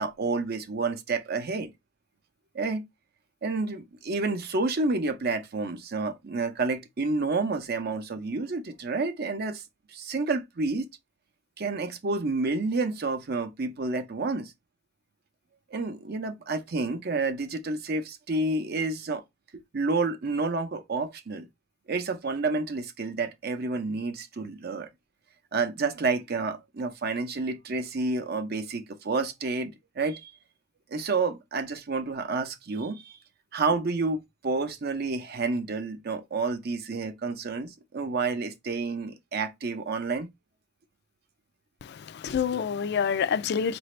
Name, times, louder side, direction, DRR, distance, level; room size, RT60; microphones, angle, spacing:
voice 1, 0.0-1.7 2.5-2.8 3.4-9.6 9.9-10.9 11.6-14.5 15.7-19.2 19.7-21.5 21.9-24.9 25.5-30.3 30.9-33.2 33.5-40.3, right 3 dB, 50° right, 0.6 m, -29 dB
voice 2, 41.8-43.8, left 7 dB, 55° left, 0.3 m, -27 dB
5.0 x 2.6 x 3.1 m
head